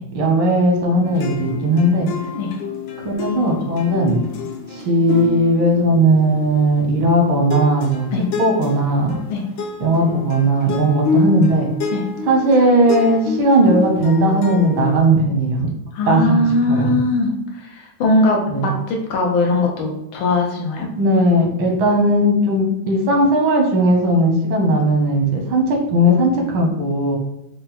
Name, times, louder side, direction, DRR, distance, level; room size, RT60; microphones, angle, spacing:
voice 1, 0.1-2.1 3.0-4.2 4.7-8.1 8.4-9.2 9.8-11.7 12.3-15.7 16.1-16.9 18.5-18.7 21.0-27.2, right 1 dB, 85° right, 1 dB, 1.8 m, -17 dB
sound 1, 1.0-7.1 7.5-15.0, left 4 dB, 70° left, 1.3 m, -28 dB
voice 2, 15.9-17.3 17.6-20.9, left 2 dB, 90° left, 1 dB, 1.7 m, -20 dB
5.9 x 2.3 x 3.9 m, 0.77 s
omnidirectional pair, 2.2 m